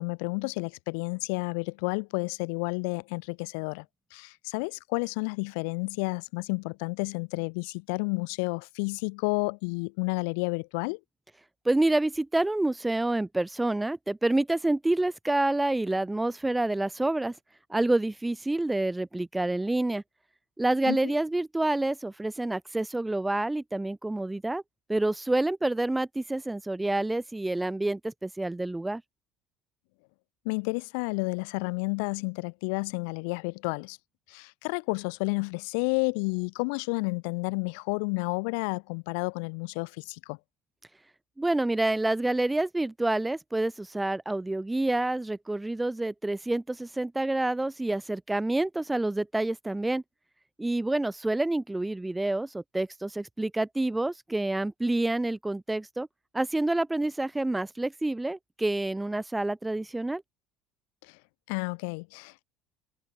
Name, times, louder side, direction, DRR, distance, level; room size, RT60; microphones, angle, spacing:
voice 1, 0.0-3.8 4.1-11.0 20.9-21.0 30.4-34.0 34.3-40.4 61.1-61.2 61.5-62.4, left 35 dB, 80° left, 4.6 m, -31 dB
voice 2, 11.6-17.3 17.7-20.0 20.6-24.6 24.9-29.0 41.4-50.0 50.6-56.1 56.3-60.2, right 2 dB, 10° right, 2.6 m, -28 dB
cardioid pair, 125°, 0 cm